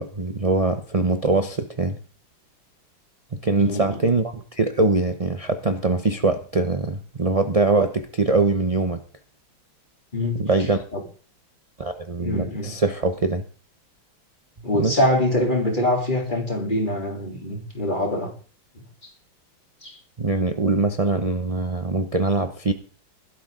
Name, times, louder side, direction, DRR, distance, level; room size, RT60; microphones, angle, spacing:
voice 1, 0.0-2.0 3.3-9.0 10.4-10.8 11.8-13.4 14.7-15.0 20.2-22.7, right 3 dB, 40° right, 0.5 m, -22 dB
voice 2, 3.6-4.0 10.1-10.4 10.9-11.0 12.2-12.7 14.6-18.3 19.8-20.0, left 1 dB, 20° left, 3.7 m, -24 dB
16.0 x 13.0 x 3.8 m
omnidirectional pair, 2.2 m